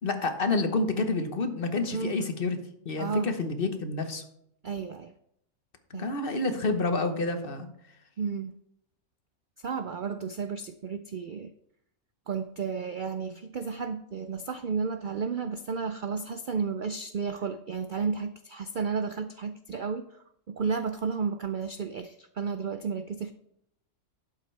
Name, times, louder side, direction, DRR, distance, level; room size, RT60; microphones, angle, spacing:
voice 1, 0.0-2.6 2.8-4.2 5.9-7.7, left 3 dB, 40° left, 7 dB, 1.2 m, -28 dB
voice 2, 3.0-3.3 4.6-5.1 5.9-6.1 8.2-8.5 9.6-11.5 12.3-20.1 20.5-23.3, right 5 dB, 90° right, 10 dB, 0.4 m, -32 dB
11.5 x 8.6 x 3.3 m, 0.74 s
omnidirectional pair, 1.5 m